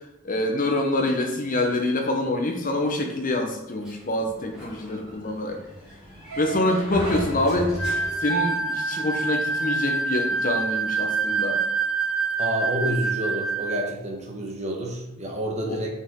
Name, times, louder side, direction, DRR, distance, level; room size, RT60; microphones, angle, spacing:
voice 1, 0.0-5.6 6.4-7.7 8.2-11.6 15.7-15.8, left 1 dB, 40° left, 3 dB, 1.0 m, -26 dB
Sliding door, 3.8-8.5, equal, 5° right, 2.6 m, -36 dB
sound 1, 6.3-10.7 11.0-11.1, right 7 dB, 80° right, 0.7 m, -36 dB
sound 2, 7.8-13.9, right 4 dB, 75° left, 2.7 m, -26 dB
voice 2, 12.4-15.9, equal, 30° right, 0 dB, 1.3 m, -29 dB
6.2 x 6.1 x 3.8 m, 0.88 s
head